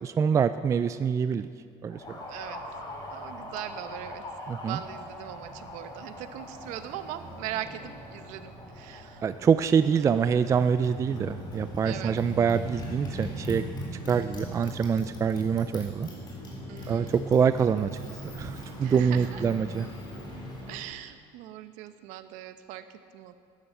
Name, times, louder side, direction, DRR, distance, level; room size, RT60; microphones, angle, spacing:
voice 1, 0.0-1.5 1.8-2.0 4.5-4.8 9.2-13.6 14.1-16.1 16.9-17.9 18.4-19.9, right 7 dB, 25° right, 12 dB, 0.4 m, -25 dB
Motorcycle, 1.9-20.9, equal, 35° left, 3.7 m, -40 dB
voice 2, 2.3-2.6 3.1-4.2 4.6-9.3 11.8-12.2 16.7-17.1 18.8-19.4 20.7-23.3, right 12 dB, 75° right, 10 dB, 0.9 m, -40 dB
12.5 x 11.0 x 7.8 m, 2.2 s
cardioid pair, 135°, 13 cm